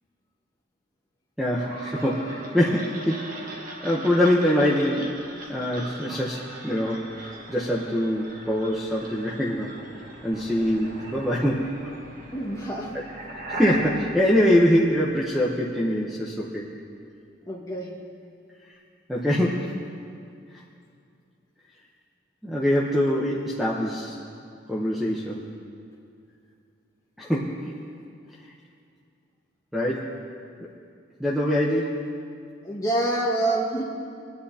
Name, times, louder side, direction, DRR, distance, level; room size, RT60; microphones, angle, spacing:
voice 1, 1.4-3.3 3.8-5.2 5.5-9.8 10.2-11.9 13.5-16.7 19.1-19.7 22.4-24.2 24.7-25.5 27.2-27.7 29.7-30.1 31.2-32.0, equal, ahead, -4 dB, 0.9 m, -24 dB
sound 1, 1.6-15.5, right 1 dB, 45° right, 1.5 m, -39 dB
voice 2, 12.3-12.9 17.4-18.0 32.6-33.8, right 1 dB, 15° left, -3 dB, 1.6 m, -26 dB
22.0 x 10.5 x 2.9 m, 2.4 s
head